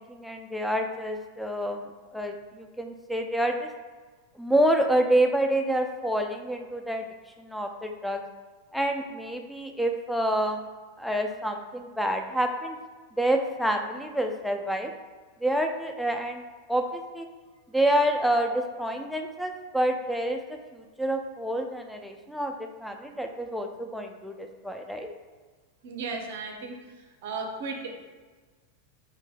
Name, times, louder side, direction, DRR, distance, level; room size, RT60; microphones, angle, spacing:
voice 1, 0.0-1.8 2.1-3.7 4.4-7.1 7.4-8.2 8.7-10.7 11.0-12.8 13.2-14.9 15.4-16.4 16.7-17.3 17.7-25.1, right 1 dB, ahead, 4 dB, 0.4 m, -28 dB
voice 2, 25.8-26.8 27.2-27.9, right 4 dB, 55° right, 3 dB, 0.6 m, -35 dB
4.5 x 2.7 x 3.9 m, 1.4 s
figure-of-eight pair, 90°, 0 cm